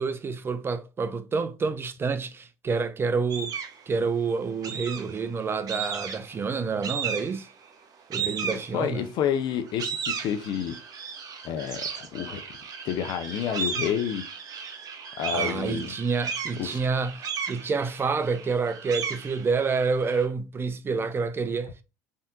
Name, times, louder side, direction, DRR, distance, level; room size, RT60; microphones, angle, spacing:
voice 1, 0.0-3.6 3.9-7.5 8.1-9.1 15.3-21.8, right 4 dB, 25° right, 0.4 m, -28 dB
sound 1, 3.3-3.8 4.6-5.3 5.7-6.4 6.8-7.5 8.1-9.1 9.5-20.2, right 6 dB, 45° right, 0.9 m, -35 dB
voice 2, 8.4-10.7 11.4-12.4 12.8-14.2 15.2-15.9 16.6-16.8, left 9 dB, 55° left, 0.5 m, -29 dB
3.4 x 2.7 x 2.4 m
hypercardioid pair, 75°, 9 cm